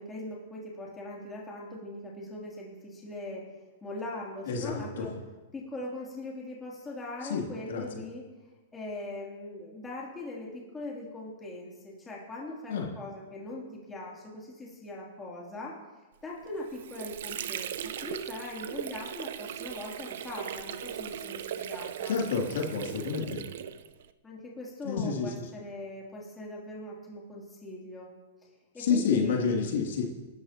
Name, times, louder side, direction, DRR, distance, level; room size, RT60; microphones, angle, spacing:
voice 1, 0.0-3.5 3.8-5.1 5.5-8.3 8.7-15.8 16.2-22.2 24.2-28.1 28.7-29.9, left 2 dB, 10° left, -4 dB, 3.1 m, -41 dB
voice 2, 4.5-5.1 7.3-7.8 12.7-12.8 22.1-23.4 24.8-25.3 28.8-30.0, left 5 dB, 75° left, 0 dB, 2.8 m, -29 dB
Water / Sink (filling or washing), 16.4-24.1, right 9 dB, 70° right, 0.7 m, -38 dB
26.0 x 13.0 x 3.0 m, 1.2 s
hypercardioid pair, 150°, 0 cm